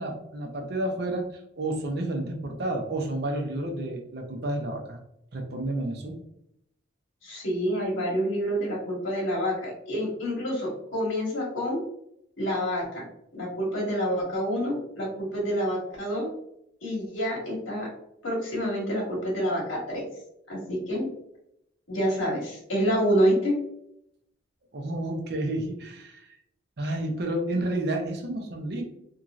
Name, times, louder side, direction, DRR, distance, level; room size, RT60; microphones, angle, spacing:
voice 1, 0.0-5.0 5.3-6.2 24.7-26.2 26.8-28.8, right 1 dB, 55° right, 3 dB, 0.6 m, -30 dB
voice 2, 7.2-11.8 12.4-13.0 13.3-16.3 16.8-17.9 18.2-20.0 20.5-21.1 21.9-23.5, equal, 90° left, -4 dB, 1.4 m, -27 dB
3.0 x 2.7 x 2.4 m, 0.78 s
head